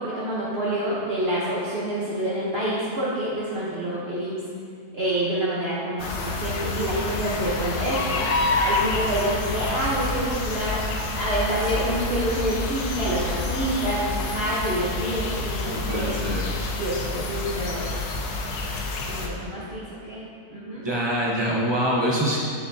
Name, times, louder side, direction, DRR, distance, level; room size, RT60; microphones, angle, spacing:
voice 1, 0.0-4.4 4.9-16.1 16.8-17.9 19.1-20.2 20.5-20.8, right 1 dB, 45° right, -8 dB, 1.1 m, -27 dB
sound 1, 6.0-19.3, left 3 dB, 80° left, 1.2 m, -28 dB
voice 2, 15.6-16.6 20.8-22.4, equal, 25° right, -3 dB, 0.5 m, -25 dB
7.2 x 6.6 x 2.7 m, 2.2 s
omnidirectional pair, 1.7 m